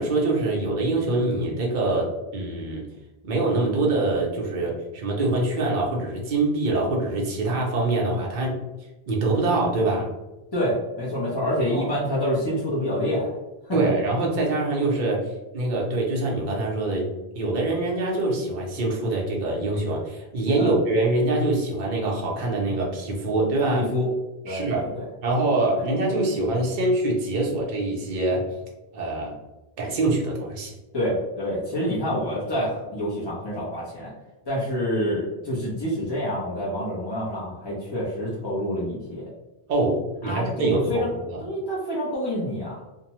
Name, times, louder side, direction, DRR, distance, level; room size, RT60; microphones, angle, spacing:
voice 1, 0.0-2.8 3.2-8.6 9.1-10.1 11.7-11.9 13.7-17.1 17.4-23.8 24.5-24.9 25.2-28.5 28.9-29.4 29.8-30.7 39.7-41.4, right 2 dB, 55° right, -2 dB, 0.8 m, -24 dB
voice 2, 10.5-13.4 13.6-13.9 20.6-20.7 23.7-24.1 24.4-25.1 25.7-25.8 30.9-34.1 34.4-39.3 40.2-41.1 41.4-42.8, equal, 25° left, -8 dB, 0.7 m, -27 dB
2.6 x 2.1 x 2.9 m, 1.0 s
omnidirectional pair, 1.1 m